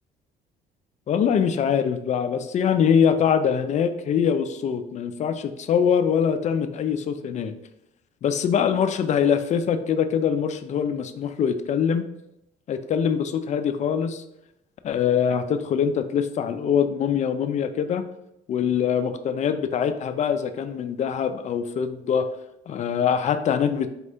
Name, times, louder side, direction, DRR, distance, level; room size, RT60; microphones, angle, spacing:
voice 1, 1.1-7.5 8.2-12.0 12.7-14.2 14.8-18.0 18.5-22.3 22.7-23.9, left 7 dB, 45° left, 9 dB, 0.4 m, -23 dB
4.2 x 2.7 x 3.4 m, 0.85 s
cardioid pair, 110°, 17 cm